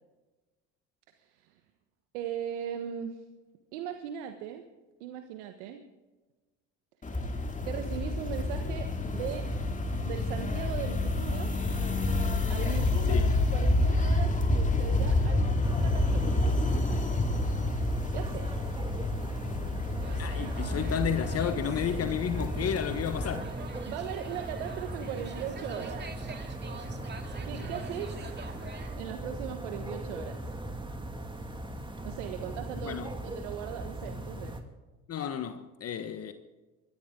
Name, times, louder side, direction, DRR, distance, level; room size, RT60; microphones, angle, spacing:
voice 1, 1.2-1.5 2.1-3.2 3.7-4.6 5.0-5.8 7.6-9.5 10.0-11.5 12.5-13.2 13.5-15.5 15.8-16.6 18.1-18.7 23.9-26.1 27.4-28.3 28.9-30.4 32.0-34.6, right 9 dB, 80° right, 1.4 m, -39 dB
sound 1, 7.0-23.4, left 2 dB, 20° left, 2.4 m, -29 dB
sound 2, 15.6-34.6, right 1 dB, 15° right, 2.3 m, -39 dB
sound 3, 20.0-29.0, right 4 dB, 30° right, 2.5 m, -46 dB
voice 2, 20.2-23.5 32.8-33.1 35.1-36.3, left 8 dB, 45° left, 1.3 m, -32 dB
22.0 x 15.0 x 3.8 m
supercardioid pair, 80°, 35 cm